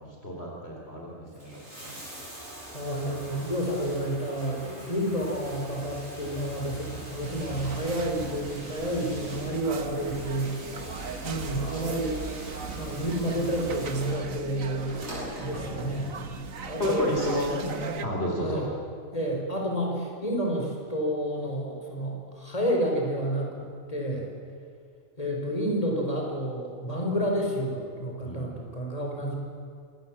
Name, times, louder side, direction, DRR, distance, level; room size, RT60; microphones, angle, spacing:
voice 1, 0.0-2.0 16.8-18.7 28.2-28.5, equal, 50° left, -2 dB, 4.1 m, -31 dB
Bathtub (filling or washing), 1.2-16.2 17.3-17.4, equal, 55° right, 8.2 m, -43 dB
voice 2, 2.7-10.5 11.2-12.2 12.7-15.0 15.4-16.2 16.6-17.1 17.5-17.7 18.4-18.7 19.1-24.3 25.2-29.3, equal, 25° left, 0 dB, 4.8 m, -30 dB
sound 1, 7.2-18.1, right 6 dB, 80° right, 1.7 m, -39 dB
27.0 x 19.5 x 7.6 m, 2.3 s
omnidirectional pair, 1.4 m